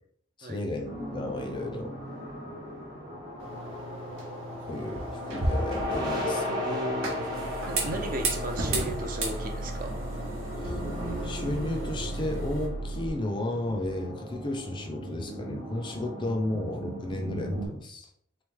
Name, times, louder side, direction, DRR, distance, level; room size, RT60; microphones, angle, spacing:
voice 1, 0.4-1.9 4.7-6.5 7.9-8.0 10.6-10.8 11.2-18.1, left 1 dB, 25° left, 2 dB, 0.4 m, -33 dB
sound 1, 0.8-17.7, left 1 dB, 20° right, 0.8 m, -36 dB
sound 2, 3.4-12.7, right 1 dB, 80° right, 1.0 m, -35 dB
voice 2, 6.5-7.4 7.7-10.0, right 1 dB, 40° right, 3 dB, 0.5 m, -35 dB
sound 3, 7.1-13.1, right 2 dB, 80° left, 0.8 m, -38 dB
3.7 x 3.1 x 3.4 m, 0.67 s
head